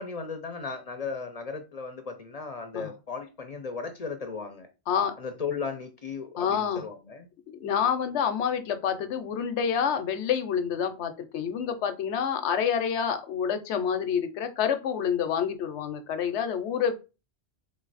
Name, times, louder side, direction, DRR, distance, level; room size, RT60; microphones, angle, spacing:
voice 1, 0.0-4.7 5.2-7.3, left 5 dB, 45° left, 0.5 m, -36 dB
voice 2, 6.4-6.8 7.6-16.9, left 7 dB, 85° left, 0.9 m, -28 dB
3.6 x 3.1 x 3.9 m
omnidirectional pair, 1.1 m